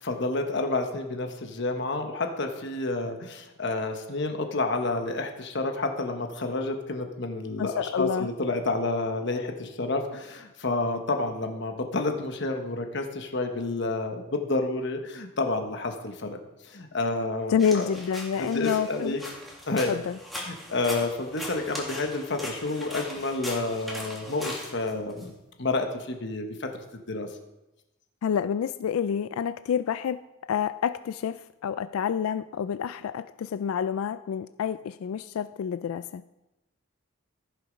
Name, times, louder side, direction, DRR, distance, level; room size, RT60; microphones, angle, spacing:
voice 1, 0.0-16.4 16.6-17.9 18.4-19.2 19.7-19.9 20.4-26.7 27.1-27.3, left 2 dB, 55° left, 4 dB, 1.1 m, -29 dB
voice 2, 7.6-8.3 17.5-19.2 19.9-20.2 28.2-36.2, left 7 dB, 85° left, 14 dB, 0.3 m, -28 dB
sound 1, 17.6-25.3, left 1 dB, ahead, 2.0 m, -39 dB
14.5 x 6.8 x 5.2 m, 1.0 s
head